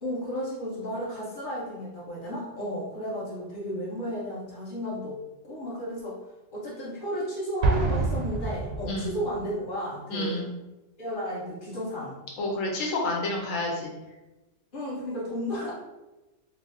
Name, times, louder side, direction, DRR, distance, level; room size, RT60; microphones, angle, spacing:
voice 1, 0.0-6.2 6.5-10.4 11.0-12.2 14.7-15.7, equal, 40° left, -7 dB, 1.3 m, -33 dB
Explosion, 7.6-9.4, right 3 dB, 65° right, 0.8 m, -27 dB
voice 2, 10.1-10.5 12.4-13.9, left 2 dB, 90° left, -1 dB, 1.1 m, -29 dB
4.5 x 2.0 x 2.7 m, 1.0 s
omnidirectional pair, 1.3 m